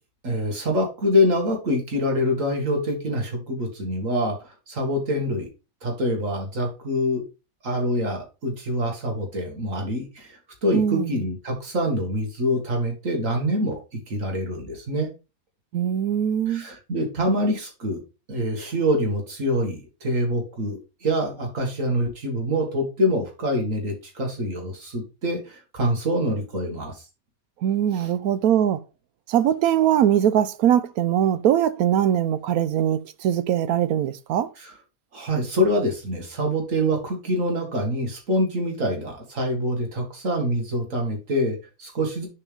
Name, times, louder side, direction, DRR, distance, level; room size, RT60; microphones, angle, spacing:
voice 1, 0.2-5.5 5.8-7.2 7.6-15.1 16.5-18.0 18.3-27.0 27.9-28.1 34.6-34.7 35.1-42.3, equal, 65° right, 2.2 m, -25 dB
voice 2, 10.7-11.2 15.7-16.6 27.6-28.8 29.3-34.5, right 10 dB, 85° right, 1.1 m, -21 dB
6.9 x 4.6 x 3.4 m
omnidirectional pair, 1.5 m